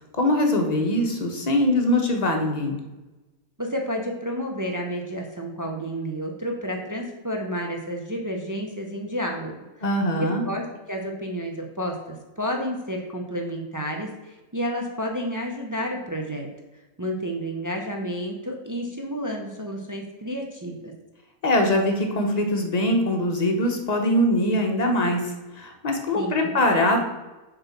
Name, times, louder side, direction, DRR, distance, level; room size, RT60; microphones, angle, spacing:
voice 1, 0.2-2.8 9.8-10.4 21.4-25.2 25.5-27.0, left 1 dB, 30° left, 3 dB, 0.9 m, -22 dB
voice 2, 3.6-9.5 10.4-16.5 17.0-20.9 26.1-26.5, equal, 30° right, 1 dB, 0.3 m, -30 dB
6.9 x 4.0 x 5.8 m, 1.1 s
omnidirectional pair, 1.7 m